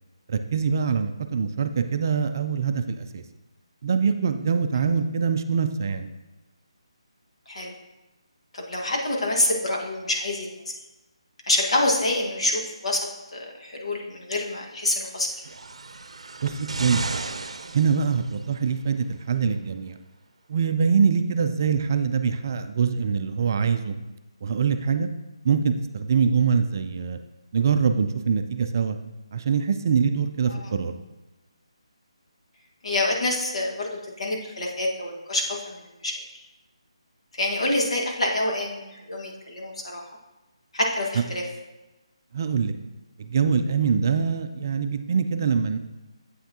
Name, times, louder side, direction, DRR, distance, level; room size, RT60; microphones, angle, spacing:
voice 1, 0.3-3.2 3.8-6.1 16.4-17.2 17.7-20.0 20.5-24.0 24.4-25.1 25.4-27.2 27.5-29.0 29.3-30.9 42.3-42.7 43.2-45.8, right 6 dB, 35° right, 8 dB, 0.3 m, -24 dB
voice 2, 8.5-10.7 11.5-15.3 30.5-30.7 32.8-36.1 37.3-40.1 40.7-41.4, left 2 dB, 70° left, -1 dB, 1.6 m, -27 dB
sound 1, 15.2-18.6 19.6-19.7, right 3 dB, 80° right, 0.6 m, -34 dB
7.8 x 5.8 x 2.8 m, 1.1 s
hypercardioid pair, 170°, 3 cm